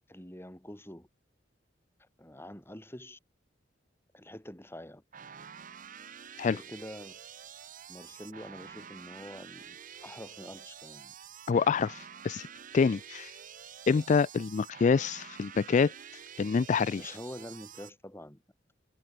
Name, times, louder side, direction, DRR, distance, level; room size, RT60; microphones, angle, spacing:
voice 1, 0.1-1.1 2.0-3.2 4.1-5.0 6.5-7.2 7.9-9.8 10.0-11.1 16.9-18.4, left 1 dB, 15° left, 3.6 m, -46 dB
sound 1, 5.1-17.9, right 8 dB, 45° right, 0.9 m, -48 dB
voice 2, 11.5-12.5 12.7-13.3 13.9-15.9 16.4-17.0, left 5 dB, 40° left, 0.3 m, -26 dB
head